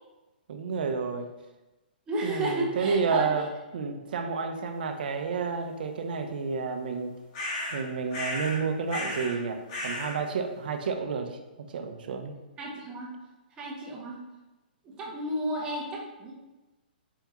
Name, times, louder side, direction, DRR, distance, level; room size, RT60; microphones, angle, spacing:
voice 1, 0.5-1.3 2.2-3.5 3.7-7.1 7.7-12.3, right 5 dB, 65° right, 6 dB, 0.5 m, -30 dB
voice 2, 2.1-3.3 12.6-13.1 13.6-14.2 14.8-16.3, right 1 dB, 15° right, -2 dB, 0.7 m, -32 dB
sound 1, 7.3-7.8 8.1-8.6 8.9-9.4 9.7-10.2, left 1 dB, 40° left, 1.2 m, -33 dB
4.6 x 3.4 x 3.0 m, 1.1 s
hypercardioid pair, 160°, 5 cm